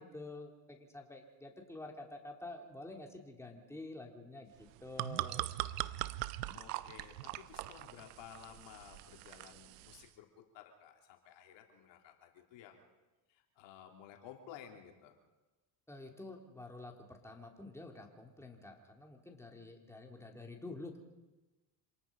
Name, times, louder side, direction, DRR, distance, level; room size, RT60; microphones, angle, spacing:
voice 1, 0.0-5.5 15.9-21.0, left 2 dB, 5° left, 1 dB, 3.5 m, -49 dB
sound 1, 4.6-10.1, right 17 dB, 85° right, 0.8 m, -41 dB
voice 2, 6.5-10.3 10.5-12.8 13.3-15.2, left 9 dB, 70° left, 3 dB, 3.2 m, -55 dB
27.0 x 19.0 x 5.4 m, 1.1 s
supercardioid pair, 80°, 46 cm